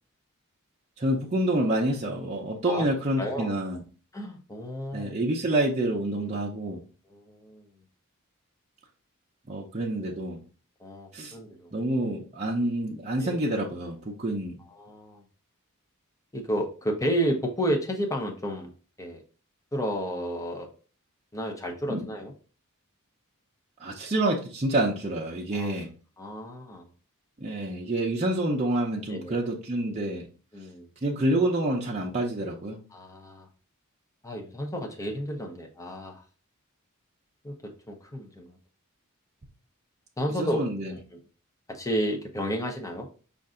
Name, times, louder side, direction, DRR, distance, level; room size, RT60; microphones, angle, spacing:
voice 1, 1.0-3.8 4.9-6.8 9.5-10.4 11.1-11.3 11.7-14.6 21.9-22.1 23.8-25.9 27.4-30.2 31.0-32.8 40.4-40.9, right 1 dB, 30° right, -3 dB, 0.6 m, -28 dB
voice 2, 3.2-3.5 4.1-5.2 7.1-7.6 10.8-11.7 13.2-13.4 14.8-15.2 16.3-18.7 19.0-19.2 19.7-20.7 21.3-22.3 25.5-25.7 26.2-26.9 29.1-29.4 30.5-30.9 32.9-33.5 34.2-36.2 37.4-37.5 37.9-38.6 40.2-40.6 40.9-41.2 41.7-43.1, equal, 15° left, 2 dB, 0.7 m, -31 dB
5.4 x 2.5 x 3.7 m, 0.37 s
head